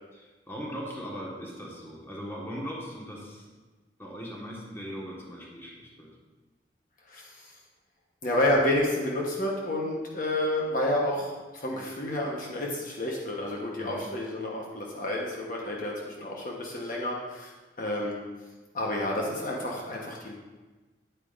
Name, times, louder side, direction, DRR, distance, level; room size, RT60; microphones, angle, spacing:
voice 1, 0.1-3.5 4.0-6.1 13.7-14.1, equal, 15° left, -3 dB, 1.4 m, -39 dB
voice 2, 7.1-7.5 8.2-18.2 18.7-20.3, left 1 dB, 50° left, -2 dB, 1.1 m, -30 dB
9.1 x 8.9 x 2.5 m, 1.2 s
head